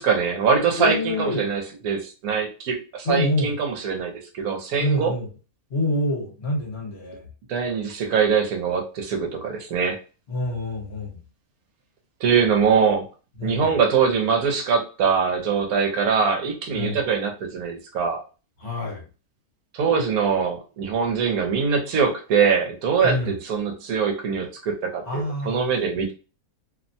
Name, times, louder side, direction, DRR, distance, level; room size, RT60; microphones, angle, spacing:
voice 1, 0.0-5.1 7.5-10.0 12.2-13.0 13.4-18.2 19.7-26.1, right 6 dB, 75° right, 3 dB, 1.1 m, -23 dB
voice 2, 0.7-1.5 3.0-3.5 4.8-5.3 5.7-7.3 10.3-11.2 13.4-13.7 16.7-17.0 18.6-19.1 23.0-23.4 25.0-25.7, left 1 dB, 50° left, -1 dB, 1.2 m, -26 dB
2.8 x 2.1 x 2.6 m, 0.34 s
omnidirectional pair, 1.6 m